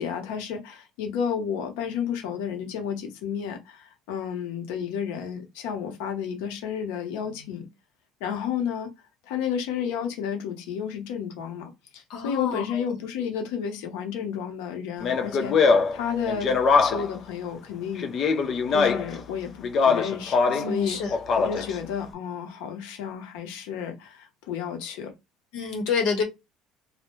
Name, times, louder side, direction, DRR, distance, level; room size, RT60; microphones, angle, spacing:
voice 1, 0.0-7.7 8.2-8.9 9.2-18.1 18.7-25.1, left 7 dB, 90° left, 0.8 m, -32 dB
voice 2, 12.1-12.6 20.5-21.2 21.5-21.6 25.5-26.2, left 5 dB, 55° left, 0.9 m, -28 dB
Speech, 15.0-17.2 18.0-19.2 19.6-20.7 21.1-21.8, left 5 dB, 30° left, 0.4 m, -22 dB
2.2 x 2.1 x 3.0 m
cardioid pair, 180°, 0 cm